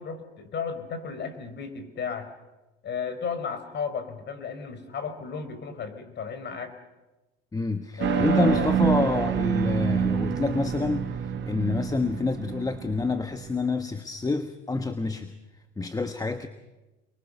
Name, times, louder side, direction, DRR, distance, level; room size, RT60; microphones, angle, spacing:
voice 1, 0.0-2.3 2.8-6.7 8.0-8.7, left 6 dB, 35° left, 10 dB, 4.9 m, -34 dB
voice 2, 7.5-15.3 15.8-16.5, left 3 dB, 10° left, 9 dB, 1.4 m, -28 dB
sound 1, 8.0-13.5, right 8 dB, 40° right, 1.6 m, -27 dB
29.0 x 22.0 x 6.9 m, 1.1 s
hypercardioid pair, 95°, 29 cm